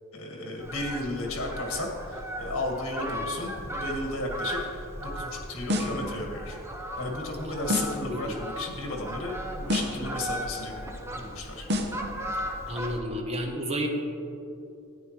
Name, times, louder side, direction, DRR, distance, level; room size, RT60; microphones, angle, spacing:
voice 1, 0.1-6.6 7.0-10.8 11.1-11.7, left 2 dB, 70° left, 1 dB, 1.8 m, -34 dB
Fowl, 0.6-13.0, equal, 10° right, 0.7 m, -37 dB
sound 1, 5.7-6.1 7.7-8.1 9.7-10.1 11.7-12.1, left 1 dB, 50° right, 0.8 m, -28 dB
voice 2, 12.7-13.9, equal, 30° right, 2 dB, 1.0 m, -31 dB
13.0 x 9.6 x 3.1 m, 2.8 s
head